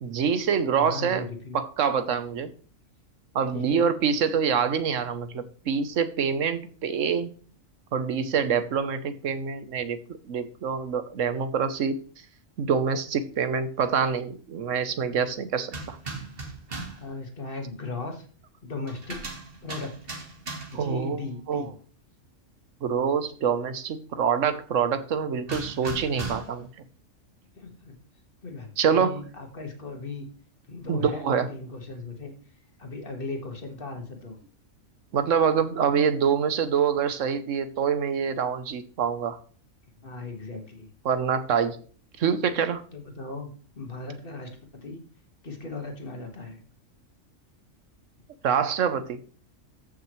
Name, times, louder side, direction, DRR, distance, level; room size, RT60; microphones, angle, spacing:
voice 1, 0.0-1.3 1.5-2.5 3.3-7.3 7.9-10.0 10.3-12.0 12.6-16.0 20.7-21.2 21.5-21.7 22.8-26.7 28.8-29.2 30.9-31.5 35.1-39.4 41.0-41.8 42.2-42.8 48.4-49.2, right 6 dB, 75° right, 1.3 m, -26 dB
voice 2, 0.7-1.6 3.5-3.9 17.0-18.2 18.6-19.2 19.6-20.0 20.7-21.7 27.6-28.0 28.4-30.3 30.7-32.3 32.8-34.4 40.0-40.9 42.9-45.0 45.4-46.6, left 3 dB, 45° left, 2.0 m, -37 dB
sound 1, 15.7-17.1 18.9-20.9 25.5-26.6, right 3 dB, 45° right, 1.8 m, -37 dB
14.0 x 6.2 x 3.2 m
omnidirectional pair, 1.3 m